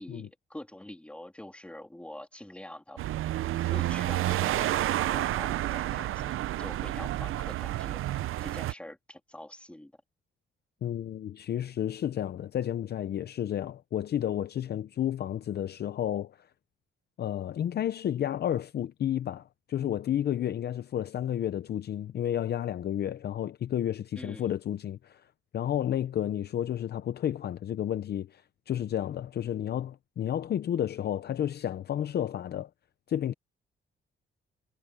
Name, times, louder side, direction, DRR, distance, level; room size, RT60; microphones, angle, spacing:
voice 1, 0.0-3.0 3.7-6.3 6.6-8.0 8.4-9.9 24.2-24.5, left 1 dB, 5° left, 3.0 m, -45 dB
sound 1, 3.0-8.7, right 14 dB, 80° right, 0.7 m, -30 dB
voice 2, 10.8-16.5 17.2-25.3 25.5-28.4 28.7-32.7 33.1-33.3, left 10 dB, 50° left, 0.6 m, -31 dB
cardioid pair, 140°, 21 cm